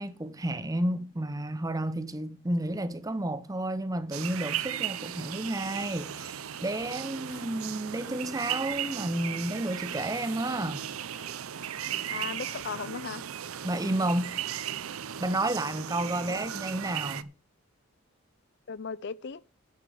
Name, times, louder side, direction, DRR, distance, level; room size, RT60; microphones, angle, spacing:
voice 1, 0.0-10.8 13.6-14.4 15.2-17.3, right 1 dB, 15° right, 0.6 m, -31 dB
sound 1, 4.1-17.2, right 10 dB, 80° right, 0.6 m, -36 dB
sound 2, 5.3-5.5 5.8-5.9 6.2-7.4 7.7-7.8 8.1-9.4 9.7-9.8 10.0-11.3 11.6-11.7 12.0-12.9, left 6 dB, 75° left, 1.4 m, -55 dB
voice 2, 12.1-13.2 16.3-16.4 18.7-19.4, left 5 dB, 50° left, 0.5 m, -37 dB
10.0 x 6.2 x 6.9 m
head